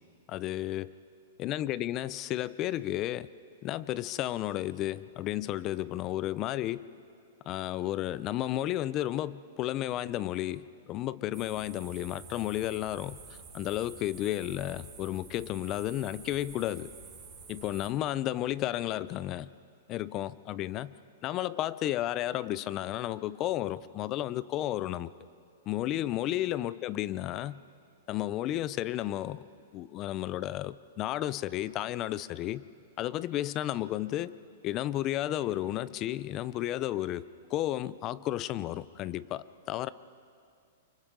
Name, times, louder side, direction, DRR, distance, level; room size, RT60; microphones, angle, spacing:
voice 1, 0.3-0.9 1.4-3.3 3.6-6.8 7.5-13.2 13.5-16.9 17.5-19.5 19.9-20.9 21.2-25.1 25.7-27.6 28.1-29.4 29.7-32.6 33.0-34.3 34.6-39.9, left 14 dB, 30° left, 18 dB, 0.5 m, -32 dB
sound 1, 11.3-17.9, right 4 dB, 15° right, 4.5 m, -49 dB
29.5 x 24.5 x 3.8 m, 2.3 s
hypercardioid pair, 155°, 0 cm